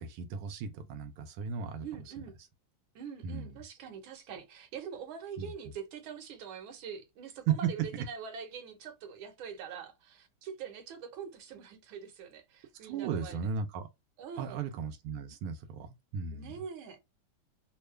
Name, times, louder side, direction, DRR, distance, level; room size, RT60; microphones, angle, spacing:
voice 1, 0.0-2.1 3.2-3.6 5.4-5.5 7.5-8.0 12.8-13.9 14.4-16.5, right 7 dB, 90° right, 1.5 m, -35 dB
voice 2, 1.8-2.4 3.0-13.4 14.2-14.6 16.3-17.0, right 7 dB, 70° right, 1.7 m, -44 dB
3.6 x 2.2 x 3.1 m
omnidirectional pair, 2.4 m